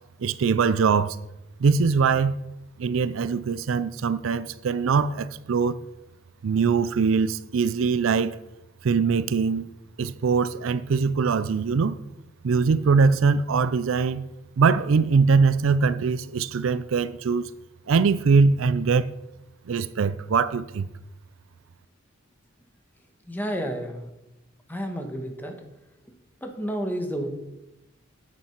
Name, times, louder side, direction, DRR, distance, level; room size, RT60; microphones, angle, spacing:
voice 1, 0.2-1.2 1.6-2.4 2.8-5.8 6.4-8.4 8.8-9.7 10.0-12.0 12.4-14.2 14.6-17.5 17.9-19.1 19.7-20.9, right 5 dB, 75° right, 0.4 m, -22 dB
voice 2, 23.3-24.1 24.7-25.6 26.4-27.3, equal, 10° left, 1.3 m, -30 dB
8.8 x 7.1 x 5.9 m
head